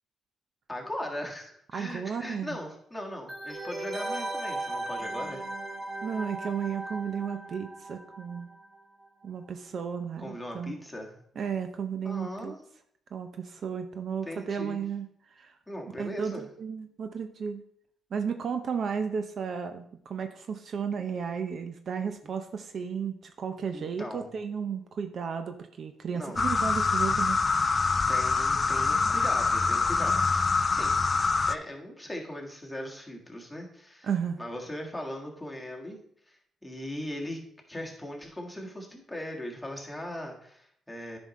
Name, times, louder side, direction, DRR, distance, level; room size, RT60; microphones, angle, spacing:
voice 1, 0.7-5.5 10.2-11.2 12.0-12.6 14.2-14.8 15.7-16.4 23.7-24.3 26.1-26.4 28.1-30.9 31.5-34.1 34.4-36.0 36.3-37.4 37.7-41.2, left 1 dB, 5° left, -1 dB, 1.7 m, -39 dB
voice 2, 1.7-2.6 6.0-8.5 9.2-10.7 11.4-12.5 13.1-15.1 15.4-15.6 16.0-17.6 18.1-27.7 34.0-34.4, right 6 dB, 55° right, 7 dB, 0.5 m, -33 dB
sound 1, 3.3-8.8 9.0-9.1, right 2 dB, 20° right, 1.1 m, -37 dB
sound 2, 26.4-31.6, left 4 dB, 30° left, 0.3 m, -25 dB
9.9 x 5.3 x 3.2 m, 0.68 s
cardioid pair, 90°, 0 cm